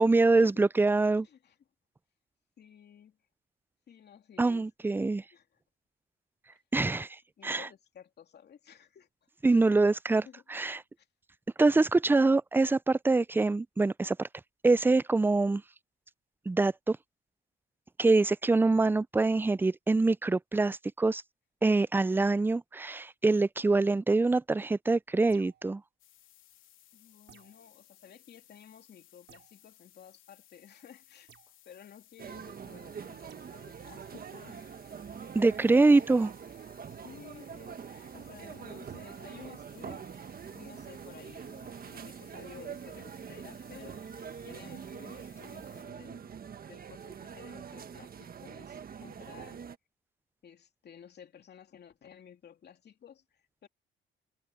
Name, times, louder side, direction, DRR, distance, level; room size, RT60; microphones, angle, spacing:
voice 1, 0.0-1.3 4.4-5.2 6.7-7.1 7.4-7.7 9.4-10.8 11.6-14.3 14.6-15.6 16.5-17.0 18.0-21.2 21.6-25.8 35.3-36.3, right 3 dB, 10° right, 0.4 m, -25 dB
voice 2, 1.2-1.6 2.6-3.2 3.9-4.7 5.3-5.6 7.4-9.3 10.2-11.1 26.9-31.3 31.6-34.7 36.9-40.1 40.5-46.3 46.7-49.6 50.4-53.7, left 8 dB, 55° left, 2.9 m, -54 dB
sound 1, 25.3-25.7 27.3-27.7 29.3-29.6 31.3-31.5 33.3-33.5, right 10 dB, 70° right, 6.4 m, -58 dB
sound 2, 26.0-45.8, left 13 dB, 90° left, 3.1 m, -61 dB
sound 3, 32.2-49.8, right 7 dB, 50° right, 1.5 m, -44 dB
cardioid pair, 90°, 20 cm